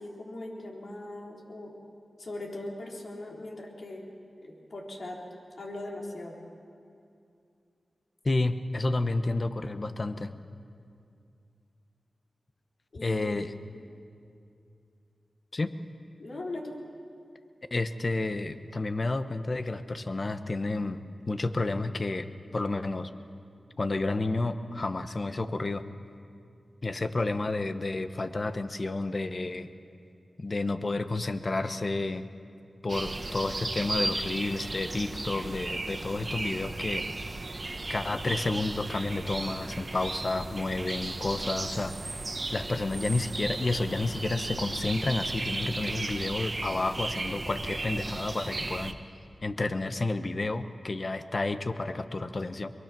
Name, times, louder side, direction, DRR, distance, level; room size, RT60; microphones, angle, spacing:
voice 1, 0.0-1.7 2.2-4.0 4.4-5.2 5.6-6.4 12.9-13.2 16.2-16.8, left 2 dB, 70° left, -1 dB, 3.9 m, -39 dB
voice 2, 8.2-10.3 13.0-13.5 15.5-15.7 17.7-21.0 21.3-23.1 23.8-25.9 26.8-29.7 30.4-32.3 32.8-37.0 37.9-42.2 42.5-49.0 49.4-52.7, left 2 dB, 50° left, 10 dB, 1.1 m, -30 dB
sound 1, 32.9-48.9, right 2 dB, 45° right, 1.3 m, -35 dB
23.0 x 22.5 x 6.1 m, 2.5 s
cardioid pair, 45°, 0 cm